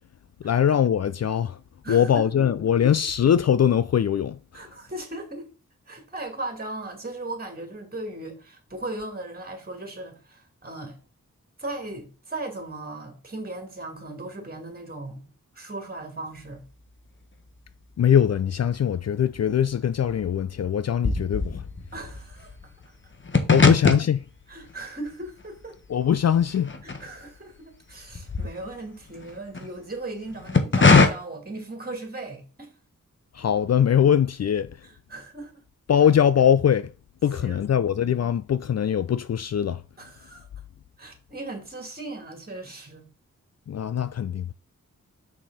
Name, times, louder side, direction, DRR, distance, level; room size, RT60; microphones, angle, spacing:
voice 1, 0.4-1.6 1.9-4.4 18.0-21.6 23.5-24.2 25.9-26.7 33.3-34.7 35.9-36.9 37.2-39.8 43.7-44.5, left 9 dB, 55° left, 0.4 m, -21 dB
voice 2, 1.8-2.7 4.5-5.5 5.9-11.0 11.6-15.3 15.5-16.6 21.9-22.7 23.6-23.7 24.5-25.8 26.8-32.7 34.8-35.5 37.4-37.8 40.0-40.5 41.0-43.1, right 2 dB, 30° right, 2.6 m, -37 dB
sound 1, 18.2-19.0 19.3-27.6 27.9-29.7 30.3-31.1, left 4 dB, 40° left, 1.3 m, -23 dB
6.6 x 6.1 x 4.1 m
cardioid pair, 60°, 32 cm